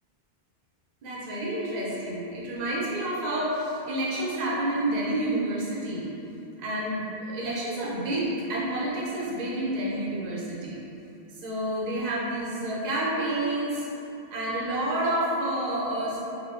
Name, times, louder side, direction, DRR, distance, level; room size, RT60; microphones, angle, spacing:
voice 1, 1.0-6.1 6.6-10.8 11.4-13.9 14.3-16.2, right 1 dB, 50° right, -6 dB, 0.6 m, -29 dB
2.5 x 2.3 x 3.4 m, 2.9 s
omnidirectional pair, 1.1 m